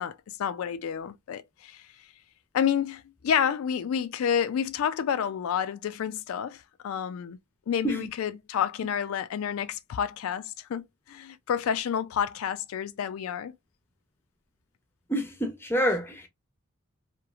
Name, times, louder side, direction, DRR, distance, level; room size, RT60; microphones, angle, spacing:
voice 1, 0.0-1.8 2.5-7.4 7.7-13.5, left 8 dB, 85° left, 0.3 m, -29 dB
voice 2, 15.1-16.3, equal, 10° left, 0.6 m, -27 dB
3.0 x 2.4 x 2.3 m
head